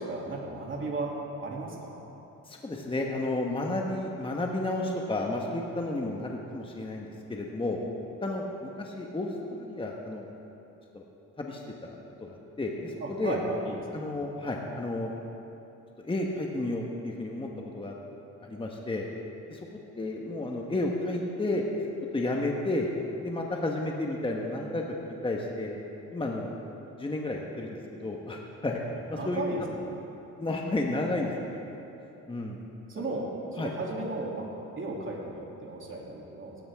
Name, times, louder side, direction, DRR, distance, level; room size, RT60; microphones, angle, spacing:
voice 1, 0.1-1.2 1.4-2.0 13.0-14.2 29.1-30.0 32.9-34.5 34.8-36.6, right 3 dB, 40° right, -2 dB, 2.9 m, -35 dB
voice 2, 2.5-7.8 8.2-10.3 10.9-11.0 11.4-13.4 13.9-15.1 16.0-17.9 18.4-19.0 19.5-19.6 20.0-21.6 22.1-22.9 23.2-25.8 26.1-26.5 27.0-28.8 29.1-29.4 30.4-31.6 32.3-32.6 33.6-33.7, left 2 dB, 15° left, 0 dB, 1.4 m, -32 dB
17.0 x 13.5 x 3.7 m, 2.9 s
cardioid pair, 90°, 30 cm